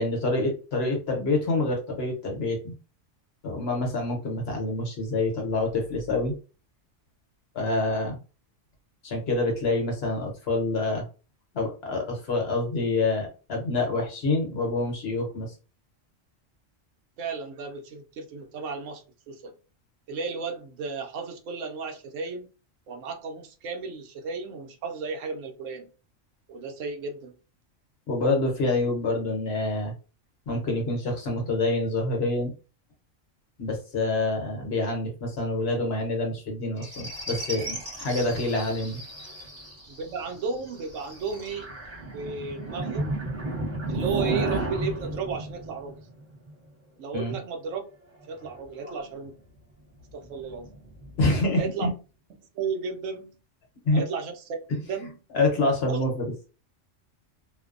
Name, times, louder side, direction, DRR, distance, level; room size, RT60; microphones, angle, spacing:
voice 1, 0.0-2.8 3.4-6.3 7.5-8.2 9.0-11.0 11.5-15.5 28.1-29.9 30.5-32.5 33.6-39.0 47.1-47.4 51.2-51.9 53.8-54.0 54.7-54.8 55.3-56.3, left 2 dB, 55° left, 1 dB, 1.0 m, -27 dB
voice 2, 17.2-19.5 20.1-22.5 22.9-25.9 26.5-27.3 39.9-41.7 42.1-43.2 43.9-46.0 47.0-47.8 48.3-49.3 50.1-50.7 51.5-51.9 52.5-53.4 53.9-54.6 54.9-55.1 55.8-56.0, right 5 dB, 80° right, 5 dB, 1.0 m, -34 dB
sound 1, 36.8-46.5 48.2-49.1 50.1-51.3, right 2 dB, 25° right, 0.9 m, -34 dB
2.6 x 2.1 x 2.4 m, 0.34 s
omnidirectional pair, 1.3 m